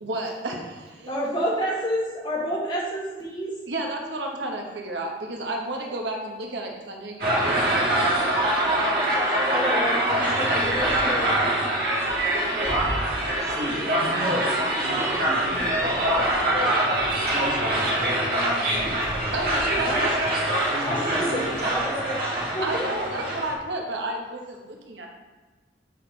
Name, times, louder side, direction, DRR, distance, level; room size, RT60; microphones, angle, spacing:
voice 1, 0.0-1.2 3.7-9.3 10.1-10.5 13.1-13.6 14.0-14.3 15.5-15.6 19.3-20.2 21.1-21.7 22.0-22.3 22.6-25.1, right 2 dB, 85° right, 1 dB, 1.1 m, -33 dB
voice 2, 1.1-3.5 9.5-12.1 19.8-20.0 20.8-22.2 22.5-22.9, equal, 25° left, -6 dB, 2.1 m, -30 dB
sound 1, 7.2-23.5, right 1 dB, 55° right, 1.7 m, -24 dB
voice 3, 13.4-13.9 14.2-16.8 17.3-19.0 19.6-19.9 20.7-22.0, equal, 35° right, -3 dB, 1.6 m, -34 dB
8.9 x 4.3 x 4.5 m, 1.2 s
head